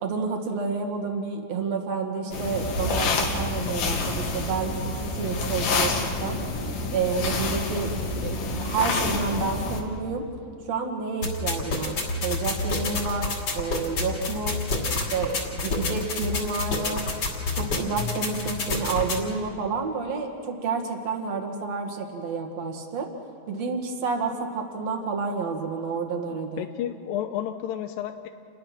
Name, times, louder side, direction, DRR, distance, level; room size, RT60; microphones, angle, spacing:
voice 1, 0.0-6.4 6.9-10.2 10.6-12.0 12.2-14.6 14.9-17.1 17.5-23.1 23.5-26.7, right 5 dB, 50° right, 2 dB, 2.4 m, -30 dB
sound 1, 2.3-9.8, left 3 dB, 55° left, 3.2 m, -28 dB
sound 2, 11.2-19.2, left 3 dB, 40° left, 3.3 m, -28 dB
voice 2, 26.3-28.3, left 10 dB, 80° left, 7 dB, 2.0 m, -32 dB
29.0 x 21.0 x 6.0 m, 2.4 s
omnidirectional pair, 5.0 m